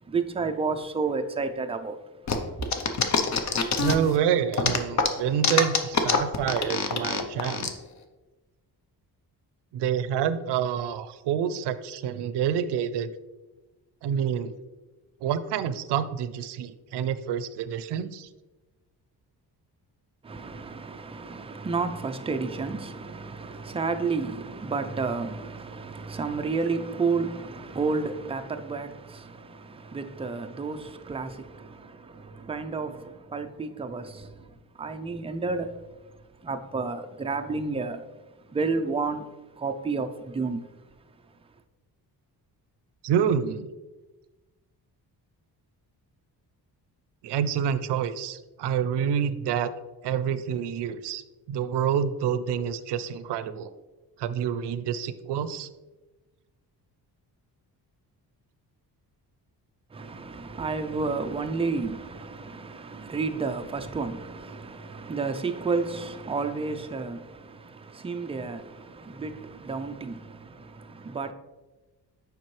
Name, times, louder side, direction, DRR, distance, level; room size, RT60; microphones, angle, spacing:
voice 1, 0.0-2.0 2.6-2.7 20.2-35.8 36.4-38.0 38.4-39.3 39.5-40.6 59.9-71.3, right 4 dB, 15° right, 0.3 m, -31 dB
sound 1, 2.3-4.2 4.5-7.7, left 5 dB, 45° left, 0.6 m, -24 dB
voice 2, 3.8-7.7 9.7-13.1 14.0-14.5 15.2-18.3 43.0-43.7 47.2-49.7 50.0-51.2 51.5-53.7 54.2-55.7, right 8 dB, 85° right, 0.5 m, -27 dB
7.3 x 5.2 x 3.1 m
wide cardioid pair, 145°, 40 cm